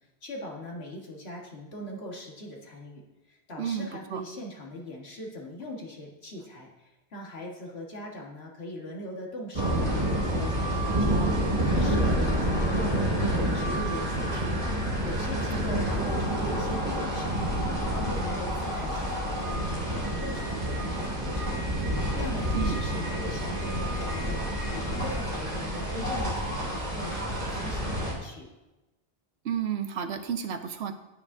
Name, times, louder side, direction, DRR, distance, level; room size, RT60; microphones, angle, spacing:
voice 1, 0.2-3.0 3.3-11.3 11.6-12.2 12.4-14.5 15.0-17.5 17.9-24.4 24.7-28.5, left 1 dB, 80° left, -1 dB, 1.8 m, -40 dB
voice 2, 3.6-4.2 15.4-15.6 22.5-22.8 29.4-30.9, right 8 dB, 85° right, 8 dB, 1.0 m, -32 dB
sound 1, 9.5-28.1, equal, 45° right, 2.1 m, -28 dB
17.5 x 6.2 x 2.7 m, 1.0 s
omnidirectional pair, 1.1 m